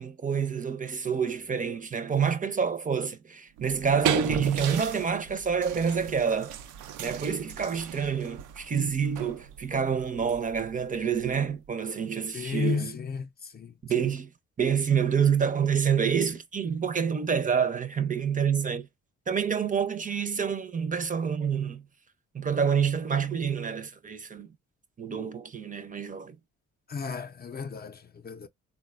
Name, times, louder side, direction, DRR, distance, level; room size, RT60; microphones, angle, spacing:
voice 1, 0.0-6.6 7.0-12.9 13.8-14.3 14.6-18.9 19.3-21.8 22.3-24.5 25.0-26.3, right 7 dB, 25° right, 0.6 m, -27 dB
sound 1, 3.6-11.7, right 11 dB, 90° right, 0.5 m, -36 dB
voice 2, 12.3-14.1 26.9-28.5, left 5 dB, 30° left, 0.6 m, -34 dB
3.8 x 2.2 x 2.4 m
cardioid pair, 90°, 30 cm